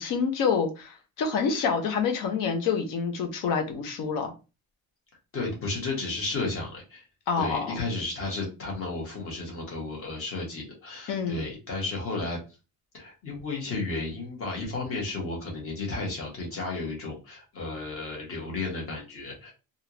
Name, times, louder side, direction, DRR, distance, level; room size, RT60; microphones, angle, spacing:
voice 1, 0.0-4.3 7.3-7.8 11.1-11.4, left 5 dB, 60° left, 0.9 m, -27 dB
voice 2, 5.3-7.0 7.4-12.4 12.9-19.5, left 3 dB, 40° left, 1.5 m, -33 dB
3.4 x 2.6 x 2.9 m
cardioid pair, 175°, 36 cm